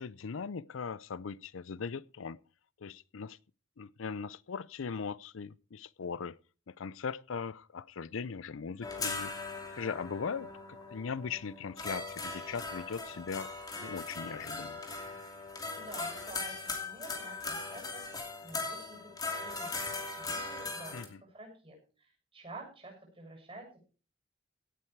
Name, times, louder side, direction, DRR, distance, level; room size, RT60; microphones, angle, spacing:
voice 1, 0.0-2.4 2.8-3.4 3.8-6.4 6.7-9.3 9.8-10.5 10.9-13.5 13.8-14.8 20.9-21.1, left 5 dB, 90° left, 0.5 m, -39 dB
sound 1, 8.8-21.1, left 3 dB, 20° left, 2.7 m, -39 dB
voice 2, 15.7-19.8 20.2-23.8, right 2 dB, 25° right, 7.3 m, -50 dB
17.5 x 9.0 x 4.6 m
head